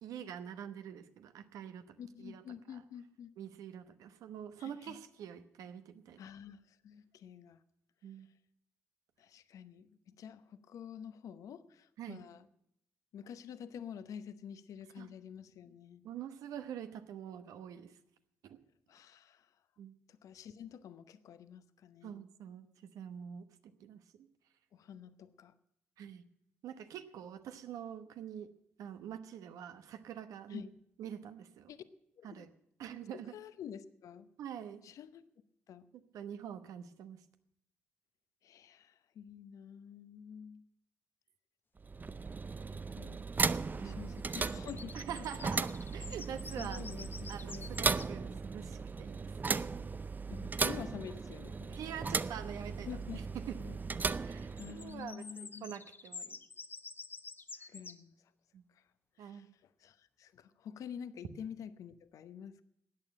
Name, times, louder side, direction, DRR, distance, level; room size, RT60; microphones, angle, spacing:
voice 1, 0.0-2.4 3.4-6.2 8.0-8.3 12.0-12.2 15.0-15.1 16.0-17.9 18.4-18.6 19.8-19.9 22.0-22.7 22.9-23.4 23.8-24.3 26.0-26.2 26.6-28.5 28.8-30.6 31.0-31.7 32.2-32.5 32.8-33.3 34.4-34.8 36.1-37.2 43.8-44.0 44.9-46.8 47.3-49.5 51.7-52.9 54.2-56.4 57.6-57.7 58.5-58.6 59.2-59.5, right 9 dB, 75° right, 10 dB, 1.0 m, -45 dB
voice 2, 2.0-3.3 4.6-5.0 6.2-7.6 9.2-12.5 13.1-16.0 18.9-19.5 20.1-22.2 24.7-25.5 30.5-30.7 31.7-31.8 32.2-32.5 33.1-34.3 34.8-35.2 35.7-35.9 38.4-40.6 42.7-43.2 43.8-45.5 46.6-48.3 50.3-51.8 52.8-53.2 53.6-53.8 54.6-55.8 57.7-58.3 58.7-58.9 59.2-62.6, left 8 dB, 70° left, 12 dB, 0.8 m, -48 dB
sound 1, 41.8-55.1, right 4 dB, 30° right, 0.5 m, -37 dB
sound 2, 44.2-48.1 54.2-58.0, left 4 dB, 35° left, 0.9 m, -49 dB
13.5 x 8.9 x 8.7 m, 0.74 s
hypercardioid pair, 50°, 6 cm